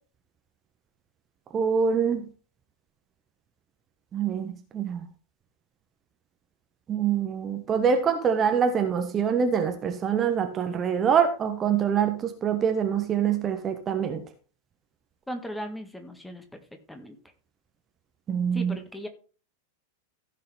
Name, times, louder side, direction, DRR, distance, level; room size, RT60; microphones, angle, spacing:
voice 1, 1.5-2.2 4.1-5.0 6.9-14.2 18.3-18.8, right 7 dB, 25° right, 6 dB, 1.3 m, -25 dB
voice 2, 15.3-16.6 16.9-17.2 18.5-19.1, equal, 5° left, 6 dB, 1.9 m, -37 dB
15.5 x 6.6 x 3.5 m, 0.37 s
figure-of-eight pair, 90°, 0 cm